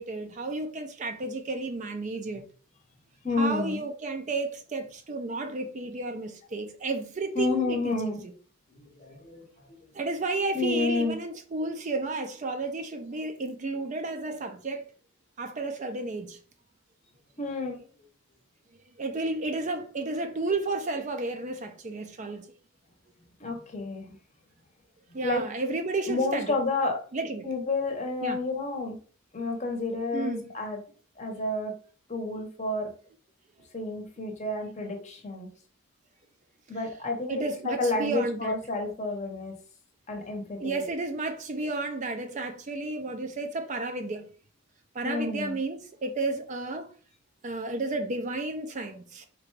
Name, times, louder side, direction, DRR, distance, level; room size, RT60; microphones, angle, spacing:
voice 1, 0.0-2.4 3.3-8.3 9.9-14.8 15.4-16.4 19.0-22.5 25.1-26.6 27.1-27.5 28.2-28.4 30.1-30.5 36.7-36.8 37.3-38.6 40.6-44.2 44.9-46.9 47.4-49.3, right 3 dB, 35° right, 0.4 m, -32 dB
voice 2, 3.2-3.8 7.4-8.2 9.0-9.5 10.5-11.1 17.4-17.8 23.4-24.2 25.2-25.4 26.1-27.0 27.4-29.0 29.3-30.8 31.2-31.7 32.1-32.9 33.7-35.5 36.7-39.5 40.1-40.8 45.0-45.6, left 3 dB, 30° left, 0.7 m, -30 dB
3.8 x 2.2 x 4.5 m
head